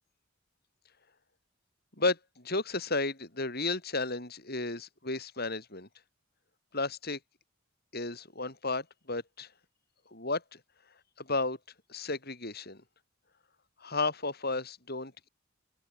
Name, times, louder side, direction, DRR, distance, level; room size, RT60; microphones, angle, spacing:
voice 1, 2.0-5.9 6.7-7.2 7.9-9.5 10.1-10.6 11.2-11.6 11.9-12.8 13.8-15.3, left 3 dB, 50° left, 7.0 m, -33 dB
head